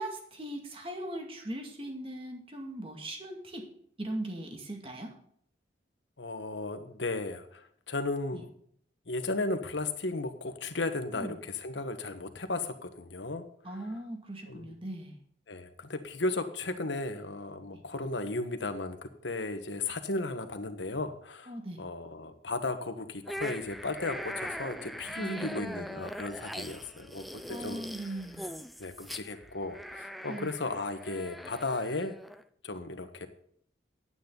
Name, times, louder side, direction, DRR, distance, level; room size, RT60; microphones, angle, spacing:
voice 1, 0.0-3.7 4.0-5.1 8.3-8.4 11.1-11.3 13.6-15.2 17.7-17.8 21.5-21.8 25.1-26.0 27.5-28.6 30.3-30.6, right 1 dB, 30° right, 2 dB, 2.2 m, -39 dB
voice 2, 6.2-7.6 7.9-8.4 9.1-13.4 14.5-14.7 15.5-19.0 19.2-21.5 21.8-27.2 27.5-27.8 28.8-32.2 32.6-33.3, left 2 dB, 85° left, 8 dB, 1.3 m, -35 dB
sound 1, 23.2-32.4, equal, ahead, 0.5 m, -42 dB
11.0 x 9.6 x 4.0 m, 0.64 s
head